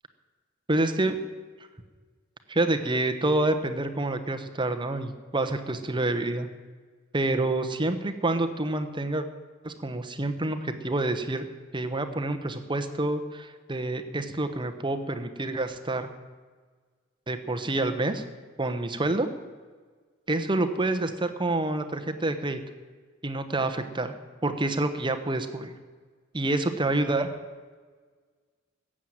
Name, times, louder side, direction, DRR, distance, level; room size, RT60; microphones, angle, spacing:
voice 1, 0.7-1.2 2.5-6.5 7.1-9.3 9.6-11.5 11.7-16.1 17.3-18.2 18.6-19.3 20.3-22.6 23.2-24.1 24.4-25.7 26.3-27.3, right 2 dB, 25° right, 7 dB, 1.1 m, -27 dB
15.0 x 7.5 x 9.3 m, 1.5 s
head